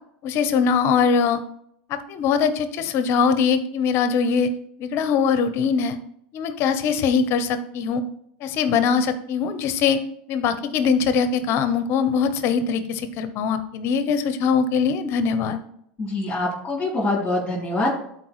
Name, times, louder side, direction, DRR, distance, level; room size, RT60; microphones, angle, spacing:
voice 1, 0.2-1.4 1.9-4.5 4.8-6.0 6.3-8.0 8.4-10.0 10.3-15.6, left 6 dB, 50° left, 11 dB, 0.9 m, -22 dB
voice 2, 16.0-17.9, left 2 dB, 15° left, -6 dB, 3.4 m, -24 dB
12.0 x 4.5 x 3.1 m, 0.70 s
supercardioid pair, 115°, 6 cm